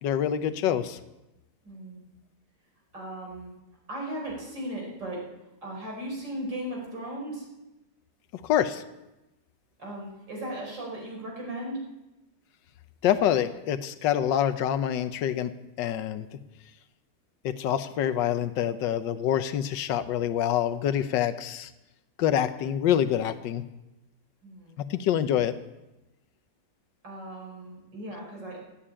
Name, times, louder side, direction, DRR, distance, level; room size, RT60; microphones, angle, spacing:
voice 1, 0.0-1.0 8.3-8.8 13.0-15.5 15.8-16.3 17.4-21.7 22.2-23.6 24.8-25.5, left 10 dB, 85° left, 11 dB, 1.5 m, -26 dB
voice 2, 1.6-2.0 2.9-3.5 3.9-5.2 5.6-7.5 9.8-11.8 24.4-24.8 27.0-28.6, right 1 dB, 80° right, -2 dB, 5.6 m, -37 dB
16.5 x 8.7 x 8.7 m, 0.97 s
omnidirectional pair, 1.9 m